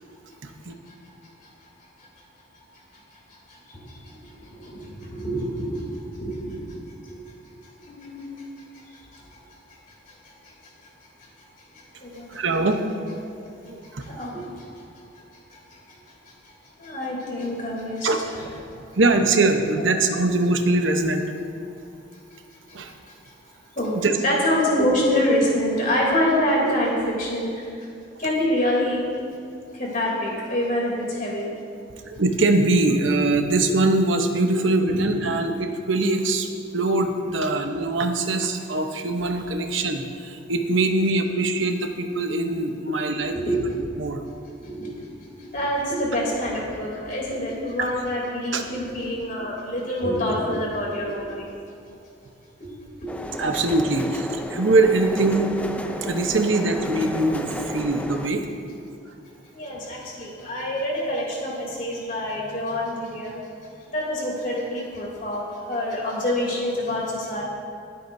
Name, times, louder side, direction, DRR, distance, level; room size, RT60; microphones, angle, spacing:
voice 1, 0.4-0.7 12.1-12.9 13.1-13.2 13.7-14.1 18.0-18.5 18.9-21.2 22.7-22.9 23.9-24.1 32.0-36.5 36.7-43.4 44.0-44.2 47.8-47.9 48.5-48.6 53.4-55.5 56.0-58.5, right 2 dB, 80° right, 5 dB, 1.0 m, -22 dB
voice 2, 4.6-5.9 6.1-6.5 7.8-8.3 12.0-12.3 14.0-14.5 16.8-18.4 19.8-19.9 23.8-24.0 24.2-27.5 28.2-29.0 29.8-31.5 34.9-35.0 43.3-43.7 44.7-44.9 45.5-51.5 52.6-52.7 53.0-53.1 59.5-63.4 63.9-67.4, left 1 dB, 45° left, -4 dB, 3.1 m, -26 dB
sound 1, 53.1-58.3, left 1 dB, 5° left, 0.5 m, -32 dB
24.0 x 8.5 x 2.7 m, 2.4 s
head